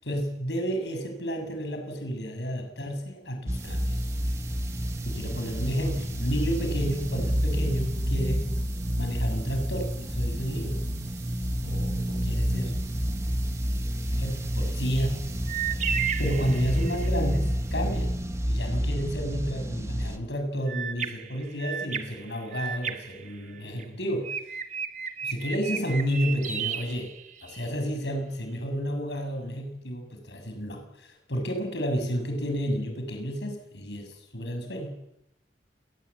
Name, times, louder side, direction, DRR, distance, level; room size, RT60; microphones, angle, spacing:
voice 1, 0.0-4.1 5.0-8.6 9.0-10.8 11.6-12.8 14.2-15.3 15.7-18.1 18.4-24.4 25.2-27.1 27.4-34.9, equal, 75° left, 5 dB, 7.4 m, -31 dB
sound 1, 3.5-20.2, equal, 15° right, 2.0 m, -29 dB
sound 2, 3.5-18.7, right 11 dB, 85° right, 7.7 m, -49 dB
Krucifix Productions birds chirping in the unknown, 15.5-17.2 20.7-23.8 24.2-27.7, right 8 dB, 45° right, 1.9 m, -34 dB
28.5 x 20.0 x 8.7 m, 0.82 s
head